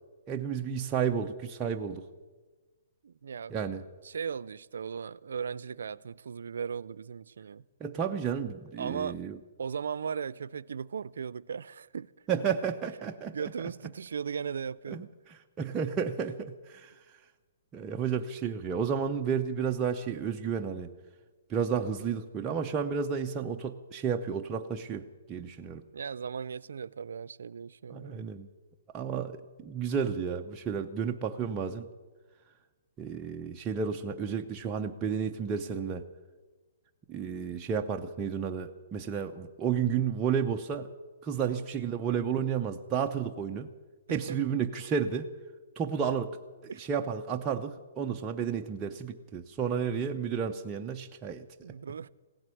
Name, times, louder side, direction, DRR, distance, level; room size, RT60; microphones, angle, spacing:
voice 1, 0.3-2.0 3.5-3.8 7.8-9.4 12.3-13.3 14.9-16.9 17.7-20.9 21.5-25.8 27.9-28.5 28.9-31.9 33.0-36.0 37.1-40.9 41.2-43.7 44.1-45.3 45.8-46.3 46.6-51.4, right 7 dB, 15° right, 0.5 m, -32 dB
voice 2, 3.0-3.6 4.0-7.7 8.8-9.2 9.6-12.1 13.3-15.1 25.9-28.2 41.3-41.7 44.1-44.4 46.7-46.9 51.6-52.1, right 6 dB, 80° right, 0.4 m, -37 dB
16.5 x 7.9 x 9.8 m
hypercardioid pair, 160°, 0 cm